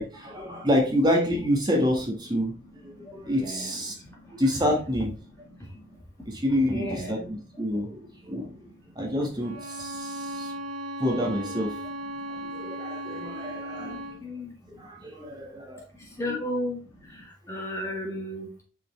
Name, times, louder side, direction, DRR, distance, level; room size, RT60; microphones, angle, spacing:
voice 1, 0.0-2.5 2.8-4.0 4.3-5.1 6.2-8.7 8.9-10.5 11.0-11.8 12.5-14.0 14.8-15.8 16.3-16.4, equal, 20° right, 1 dB, 1.5 m, -28 dB
voice 2, 3.3-3.8 4.5-4.6 6.6-7.3 13.8-14.5 16.2-16.8 17.5-18.5, left 1 dB, 15° left, -1 dB, 1.6 m, -33 dB
Bowed string instrument, 9.4-14.3, right 1 dB, 85° right, 1.2 m, -36 dB
5.6 x 5.6 x 3.2 m, 0.35 s
head